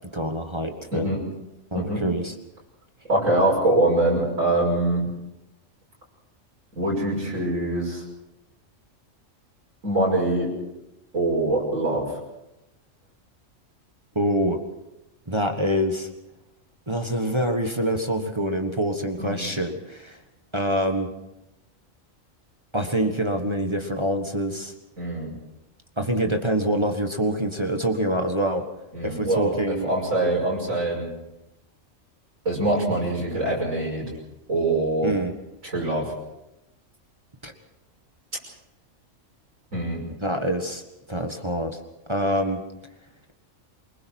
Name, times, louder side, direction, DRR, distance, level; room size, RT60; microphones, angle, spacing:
voice 1, 0.1-1.2 1.7-2.3 14.1-14.6 15.3-16.1 16.9-20.2 20.5-21.1 22.7-24.7 26.0-28.6 29.0-29.9 35.0-35.3 37.4-37.5 40.2-40.8 41.1-41.8 42.1-42.6, right 1 dB, 20° right, 4 dB, 1.6 m, -25 dB
voice 2, 1.7-2.1 3.1-5.1 6.7-8.0 9.8-10.5 11.1-12.2 19.2-19.5 25.0-25.3 28.9-31.1 32.4-34.1 34.5-35.1 35.6-36.1 39.7-40.1, right 2 dB, 80° right, -4 dB, 6.4 m, -24 dB
28.0 x 21.0 x 4.7 m, 0.95 s
omnidirectional pair, 1.4 m